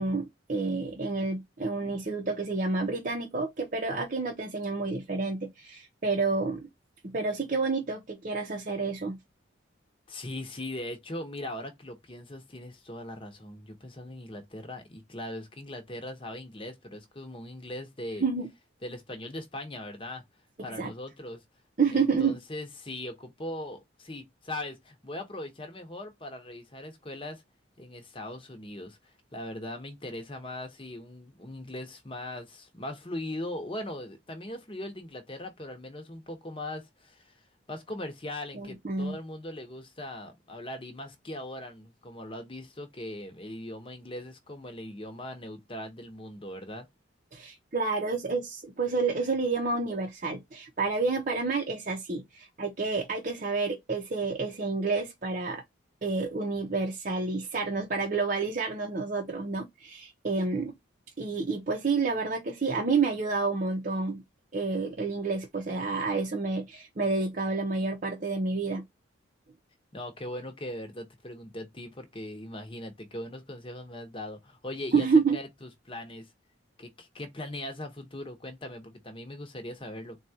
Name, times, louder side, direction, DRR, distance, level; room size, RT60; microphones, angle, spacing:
voice 1, 0.0-6.7 7.0-9.2 18.2-18.5 20.8-20.9 21.8-22.4 38.5-39.2 47.3-55.6 56.0-60.7 61.2-64.2 64.5-68.8 74.9-75.4, right 4 dB, 40° right, 0.7 m, -29 dB
voice 2, 10.1-18.3 18.8-20.2 20.6-21.4 21.9-27.4 27.8-37.4 37.7-46.9 69.9-75.1 75.3-76.3 76.8-80.2, left 1 dB, 25° left, 0.9 m, -40 dB
4.0 x 2.3 x 2.7 m
head